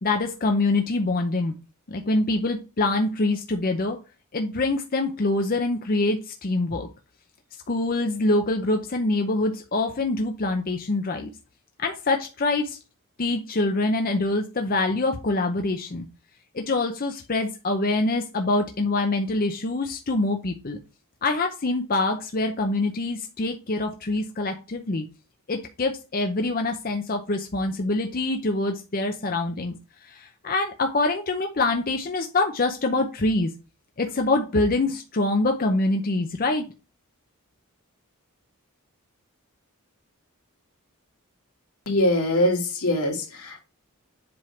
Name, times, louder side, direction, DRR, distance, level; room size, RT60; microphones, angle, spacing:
voice 1, 0.0-1.5 1.9-4.0 4.3-6.9 7.7-11.3 11.8-12.8 13.2-16.1 16.5-20.8 21.2-25.0 25.5-29.7 30.0-33.5 34.0-36.6, left 2 dB, 40° left, 4 dB, 0.7 m, -25 dB
voice 2, 41.9-43.6, left 1 dB, 85° left, 0 dB, 2.2 m, -23 dB
7.7 x 3.6 x 4.4 m, 0.30 s
head